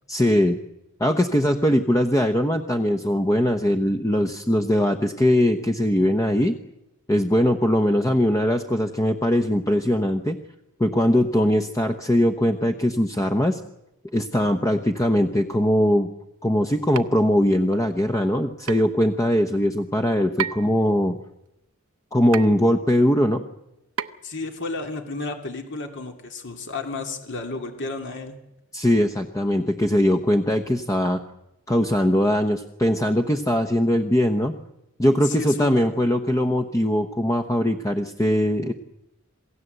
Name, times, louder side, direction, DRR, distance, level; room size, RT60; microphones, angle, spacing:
voice 1, 0.1-0.6 1.0-6.6 7.1-10.4 10.8-13.6 14.1-16.1 16.4-21.2 22.1-23.4 28.7-31.2 31.7-34.5 35.0-38.7, equal, 15° left, 7 dB, 1.0 m, -21 dB
sound 1, 16.9-17.1 18.7-18.9 20.4-20.8 22.3-22.6 24.0-24.3, right 7 dB, 90° right, 0.9 m, -30 dB
voice 2, 24.2-28.4 35.2-35.9, left 3 dB, 60° left, 4 dB, 2.7 m, -32 dB
27.5 x 17.0 x 8.0 m, 0.89 s
head